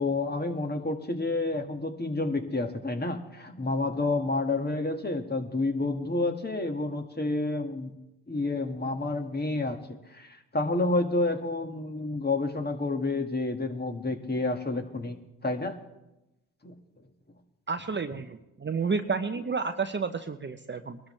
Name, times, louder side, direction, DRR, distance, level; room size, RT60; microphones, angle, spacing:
voice 1, 0.0-7.9 8.3-15.8 16.6-16.8, left 2 dB, 25° left, 5 dB, 1.9 m, -29 dB
voice 2, 17.7-21.0, right 5 dB, 30° right, 8 dB, 0.8 m, -31 dB
21.5 x 12.5 x 3.3 m, 0.94 s
supercardioid pair, 60°, 39 cm